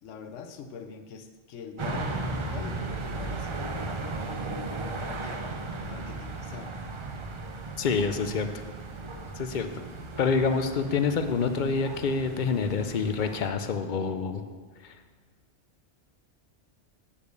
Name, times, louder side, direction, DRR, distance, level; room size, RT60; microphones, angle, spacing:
voice 1, 0.0-3.8 4.9-6.8, left 6 dB, 90° left, 8 dB, 1.1 m, -43 dB
sound 1, 1.8-13.5, right 2 dB, 35° right, 0.5 m, -36 dB
voice 2, 7.8-8.6 9.4-9.7 10.2-14.4, left 5 dB, 50° left, 8 dB, 0.7 m, -27 dB
8.6 x 5.1 x 6.6 m, 1.4 s
omnidirectional pair, 1.2 m